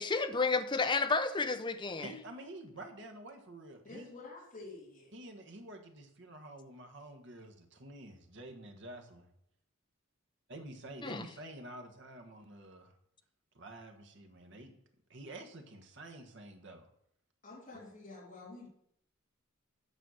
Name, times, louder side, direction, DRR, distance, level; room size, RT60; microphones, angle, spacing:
voice 1, 0.0-2.1 11.0-11.2, left 4 dB, 25° left, 9 dB, 0.6 m, -31 dB
voice 2, 2.0-4.1 5.1-9.3 10.5-12.9 13.5-14.7 15.1-16.9, right 1 dB, 60° right, 5 dB, 1.5 m, -49 dB
voice 3, 3.8-5.1 17.4-18.7, left 3 dB, 40° left, -5 dB, 3.0 m, -49 dB
9.0 x 5.6 x 6.4 m, 0.73 s
head